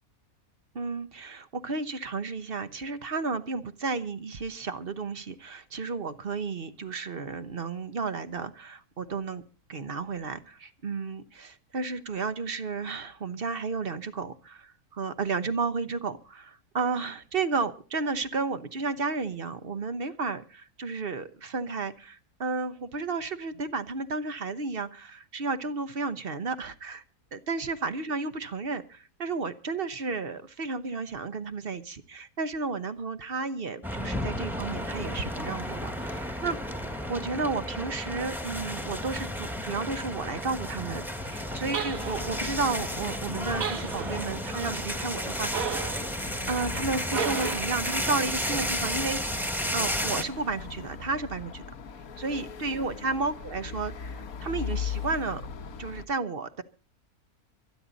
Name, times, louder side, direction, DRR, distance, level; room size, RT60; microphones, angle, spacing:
voice 1, 0.7-9.4 9.7-27.0 27.3-36.6 37.1-46.0 46.5-49.4 49.7-51.6 52.2-55.4 55.8-56.6, right 4 dB, 45° right, 12 dB, 1.1 m, -32 dB
sound 1, 33.8-50.2, equal, ahead, 1.6 m, -33 dB
sound 2, 41.4-56.1, left 6 dB, 70° left, 1.6 m, -40 dB
sound 3, 41.7-42.5 43.6-44.4 45.5-46.1 47.1-47.8, right 7 dB, 65° right, 1.7 m, -33 dB
25.0 x 10.0 x 4.1 m, 0.35 s
omnidirectional pair, 1.6 m